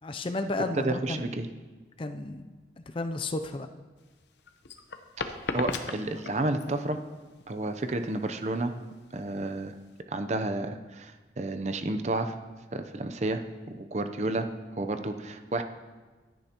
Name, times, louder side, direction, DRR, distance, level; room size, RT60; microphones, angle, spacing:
voice 1, 0.0-1.5 2.0-2.5 2.9-3.7, left 2 dB, 30° left, 8 dB, 0.4 m, -33 dB
voice 2, 0.7-1.5 5.2-7.0 7.5-8.7 9.1-9.8 10.1-12.3 12.7-13.4 13.7-14.5 14.7-15.6, right 2 dB, 40° right, 8 dB, 0.6 m, -31 dB
sound 1, 4.0-10.0, left 3 dB, 75° left, 0.8 m, -37 dB
16.5 x 10.0 x 2.9 m, 1.3 s
head